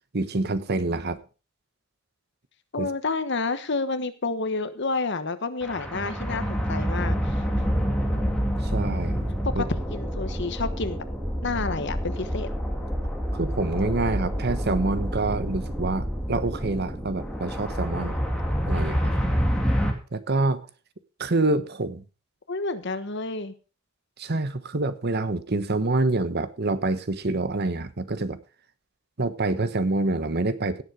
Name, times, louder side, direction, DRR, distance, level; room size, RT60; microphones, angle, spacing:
voice 1, 0.1-1.2 2.8-2.9 8.7-9.7 13.3-18.2 18.7-19.3 20.1-20.6 21.2-22.0 24.2-28.4 29.2-30.8, right 2 dB, 50° right, 12 dB, 1.1 m, -26 dB
voice 2, 2.7-7.4 9.4-11.0 11.4-12.5 22.5-23.5, left 3 dB, 60° left, 12 dB, 1.2 m, -29 dB
sound 1, 5.6-19.9, equal, 5° left, 2.5 m, -27 dB
17.0 x 7.3 x 5.0 m, 0.34 s
head